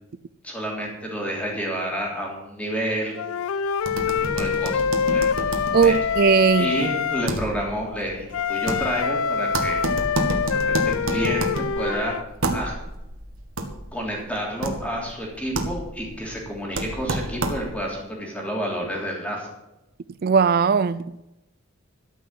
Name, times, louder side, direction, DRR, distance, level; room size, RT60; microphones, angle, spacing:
voice 1, 0.4-3.1 4.3-4.8 5.1-6.0 6.6-9.8 10.7-12.2 12.5-12.8 13.9-19.5, equal, 5° left, 3.3 m, -29 dB
Wind instrument woodwind instrument, 3.2-7.3 8.3-12.2, left 6 dB, 90° left, 0.5 m, -25 dB
sound 1, 3.8-17.9, right 2 dB, 75° right, 1.6 m, -30 dB
voice 2, 5.7-6.7 20.2-21.2, right 6 dB, 45° right, 0.4 m, -19 dB
13.0 x 6.1 x 8.1 m
head